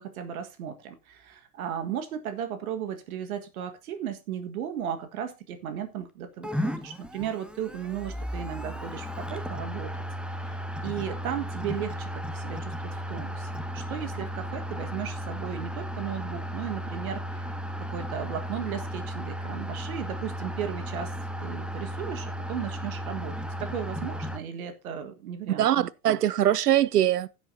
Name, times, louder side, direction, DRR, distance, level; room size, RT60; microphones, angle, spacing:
voice 1, 0.0-9.9 10.4-10.6 10.8-17.5 17.9-23.3 23.6-25.7, right 9 dB, 65° right, 1.6 m, -35 dB
sound 1, 6.4-24.4, equal, ahead, 1.0 m, -35 dB
voice 2, 25.6-27.3, right 11 dB, 85° right, 0.6 m, -22 dB
16.0 x 8.0 x 2.7 m
hypercardioid pair, 90°, 46 cm